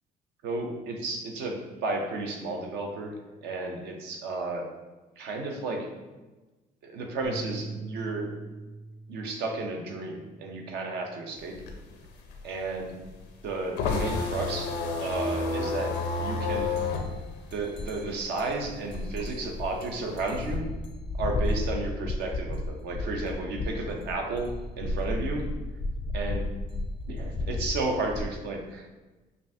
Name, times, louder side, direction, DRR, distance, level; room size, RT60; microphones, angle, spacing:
voice 1, 0.4-3.2 3.4-4.7 5.2-5.9 6.8-8.3 9.1-11.6 12.4-12.9 13.4-14.7 15.0-16.7 17.5-20.6 21.2-24.5 24.8-25.4 26.1-26.4 27.1-28.9, right 3 dB, 80° right, 2 dB, 0.7 m, -33 dB
Bass guitar, 7.2-11.7 12.1-13.5, right 4 dB, 40° right, 0.9 m, -45 dB
sound 1, 11.4-18.5 18.8-20.6, left 3 dB, 85° left, 0.6 m, -31 dB
sound 2, 15.9-16.1 16.4-28.3, left 2 dB, 30° left, 0.3 m, -34 dB
5.3 x 2.6 x 2.7 m, 1.2 s
cardioid pair, 110°, 17 cm